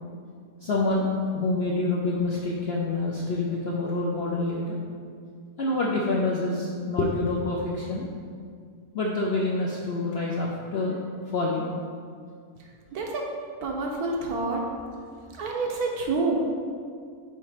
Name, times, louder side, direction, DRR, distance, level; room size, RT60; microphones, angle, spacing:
voice 1, 0.6-1.1 1.3-4.8 5.6-8.0 8.9-11.0 11.3-11.7, left 2 dB, 65° left, -3 dB, 0.6 m, -27 dB
voice 2, 12.9-13.3 13.6-14.6 15.3-16.4, right 3 dB, 75° right, 0 dB, 1.3 m, -28 dB
5.6 x 4.1 x 4.9 m, 2.1 s
omnidirectional pair, 1.7 m